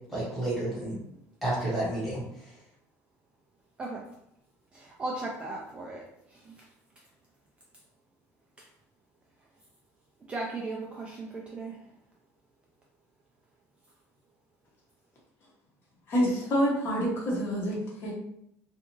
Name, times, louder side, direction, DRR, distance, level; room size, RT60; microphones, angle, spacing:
voice 1, 0.1-1.0 1.4-2.5, right 1 dB, ahead, -8 dB, 1.2 m, -31 dB
voice 2, 4.7-6.7 8.6-8.7 10.3-11.8, right 2 dB, 20° right, -2 dB, 0.3 m, -37 dB
voice 3, 16.1-18.1, equal, 35° left, -4 dB, 0.9 m, -27 dB
2.5 x 2.4 x 2.9 m, 0.76 s
cardioid pair, 155°, 6 cm